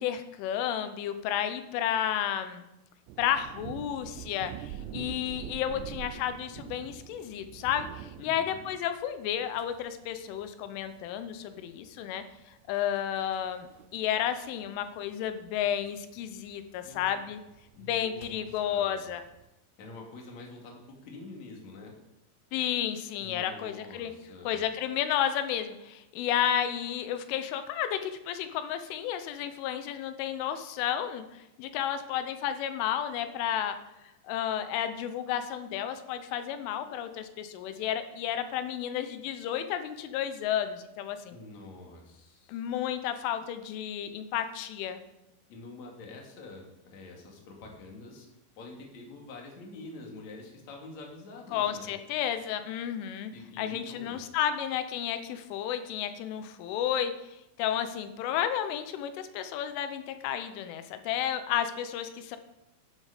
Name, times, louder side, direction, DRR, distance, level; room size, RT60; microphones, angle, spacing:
voice 1, 0.0-2.6 3.2-17.4 17.8-19.2 22.5-24.1 24.4-33.8 34.2-41.4 42.5-45.0 51.5-53.3 53.6-62.4, left 10 dB, 85° left, 9 dB, 3.3 m, -32 dB
sound 1, 3.1-19.5, right 11 dB, 80° right, 2.6 m, -46 dB
voice 2, 4.8-6.0 8.2-8.7 16.8-17.2 17.7-19.1 19.8-21.9 23.2-24.6 41.3-42.6 45.5-48.3 48.5-51.9 53.3-54.2, left 2 dB, 45° left, 0 dB, 2.9 m, -47 dB
11.5 x 9.9 x 5.0 m, 0.91 s
omnidirectional pair, 5.5 m